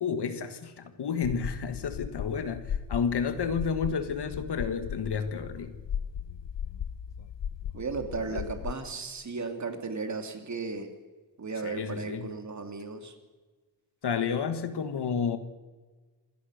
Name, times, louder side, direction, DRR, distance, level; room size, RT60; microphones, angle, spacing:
voice 1, 0.0-5.7 8.3-8.4 11.6-12.3 14.0-15.4, left 6 dB, 70° left, 9 dB, 1.6 m, -31 dB
sound 1, 1.2-8.7, left 8 dB, 85° left, 1.0 m, -37 dB
voice 2, 7.7-10.9 11.4-13.1, right 4 dB, 40° right, 6 dB, 2.9 m, -35 dB
27.0 x 17.5 x 6.6 m, 1.3 s
wide cardioid pair, 160°, 42 cm